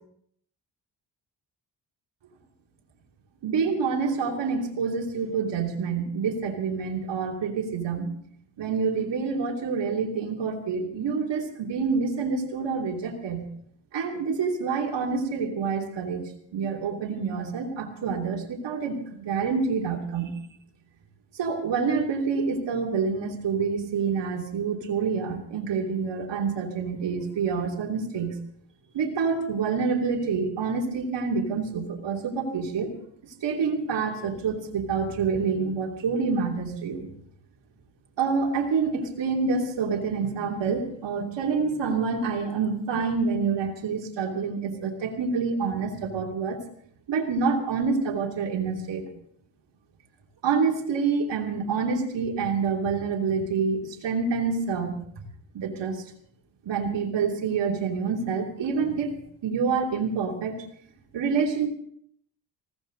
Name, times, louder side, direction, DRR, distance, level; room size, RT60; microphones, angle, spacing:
voice 1, 3.4-8.1 8.6-13.5 13.9-20.3 21.3-28.3 28.9-32.9 33.4-37.0 38.2-46.6 47.1-49.0 50.4-55.0 55.5-56.0 56.6-60.5 61.1-61.7, right 5 dB, 70° right, 0 dB, 2.9 m, -27 dB
20.0 x 16.0 x 3.9 m, 0.67 s
cardioid pair, 60°, 45 cm